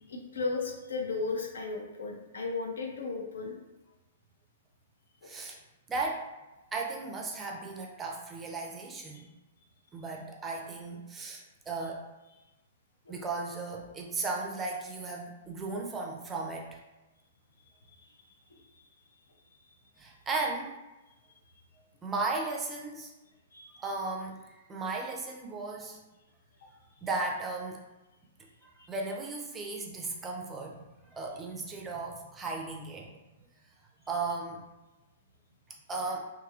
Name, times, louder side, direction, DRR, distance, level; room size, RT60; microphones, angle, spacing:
voice 1, 0.1-3.6 5.2-5.3 9.1-9.2 13.1-13.2 18.5-18.9 23.5-23.8 28.8-28.9, left 4 dB, 65° left, 2 dB, 0.4 m, -35 dB
voice 2, 5.2-5.6 5.9-6.3 6.7-9.3 9.9-12.1 13.1-16.8 20.0-20.7 22.0-23.1 23.8-26.0 27.0-27.8 28.6-33.2 34.1-34.6 35.9-36.2, right 3 dB, 15° right, 0 dB, 0.4 m, -36 dB
2.9 x 2.3 x 2.4 m, 1.0 s
figure-of-eight pair, 105°, 0 cm